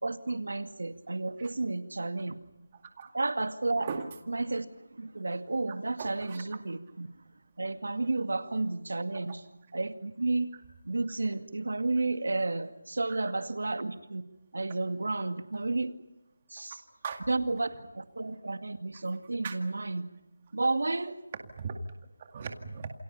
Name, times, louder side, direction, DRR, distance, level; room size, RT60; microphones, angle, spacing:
voice 1, 0.0-2.4 3.1-3.9 4.3-4.7 5.0-7.1 7.6-9.4 9.7-10.5 10.9-14.2 14.5-15.9 16.5-16.8 17.3-20.0 20.5-21.1, right 2 dB, 75° right, 8 dB, 2.2 m, -31 dB
voice 2, 2.7-3.1 3.8-4.1 6.0-6.4 9.1-9.4 13.1-13.2 17.0-17.2 18.9-19.0 19.4-19.6 21.4-21.7 22.2-22.9, right 6 dB, 30° right, 5 dB, 2.1 m, -39 dB
28.5 x 27.5 x 5.7 m, 0.89 s
figure-of-eight pair, 170°, 0 cm